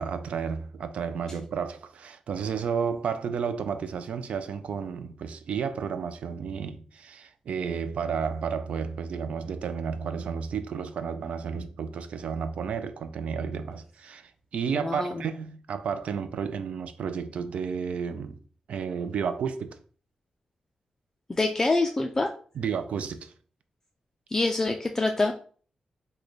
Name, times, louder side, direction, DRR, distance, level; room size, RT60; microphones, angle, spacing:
voice 1, 0.0-18.4 18.7-19.8 22.6-23.3, right 6 dB, 75° right, 0.4 m, -32 dB
voice 2, 14.7-15.2 21.3-22.3 24.3-25.3, left 2 dB, 20° left, 0.3 m, -25 dB
3.1 x 2.2 x 3.9 m
wide cardioid pair, 105°, 2 cm